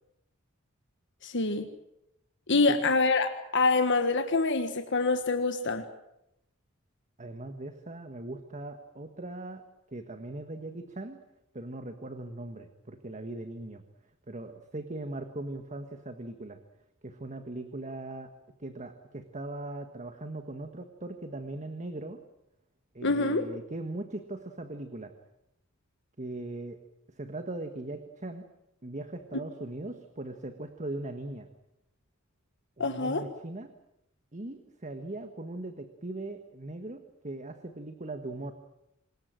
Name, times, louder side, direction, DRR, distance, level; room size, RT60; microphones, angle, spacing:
voice 1, 1.2-1.7 2.5-5.9 23.0-23.4 32.8-33.2, left 3 dB, 60° left, 7 dB, 1.6 m, -26 dB
voice 2, 7.2-9.6 9.9-11.2 11.5-13.8 14.3-16.6 17.0-18.3 18.6-22.2 22.9-25.1 26.2-26.8 27.1-28.5 28.8-31.5 32.8-33.7 34.3-38.5, right 2 dB, 35° right, 8 dB, 1.6 m, -39 dB
26.5 x 21.0 x 7.7 m, 0.83 s
head